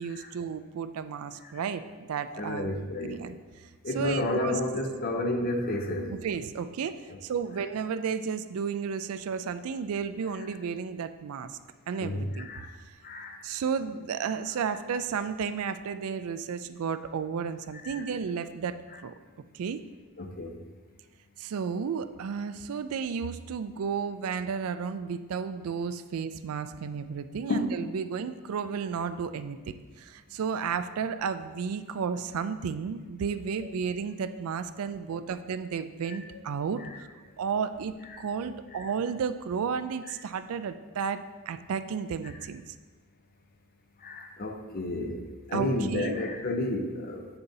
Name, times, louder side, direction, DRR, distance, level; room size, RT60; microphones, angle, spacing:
voice 1, 0.0-2.8 3.0-3.4 3.9-4.6 6.1-11.5 11.9-12.5 13.4-19.1 19.5-19.8 21.4-36.8 37.4-42.6 45.5-46.2, right 6 dB, 75° right, 11 dB, 0.4 m, -33 dB
voice 2, 2.4-3.2 3.8-6.1 12.0-12.7 13.0-13.4 17.8-18.0 20.2-20.6 27.5-27.8 36.1-36.2 36.8-36.9 38.1-38.2 38.7-38.9 44.0-45.2 45.5-47.3, left 1 dB, 40° left, 5 dB, 0.6 m, -31 dB
8.0 x 6.8 x 2.7 m, 1.4 s
head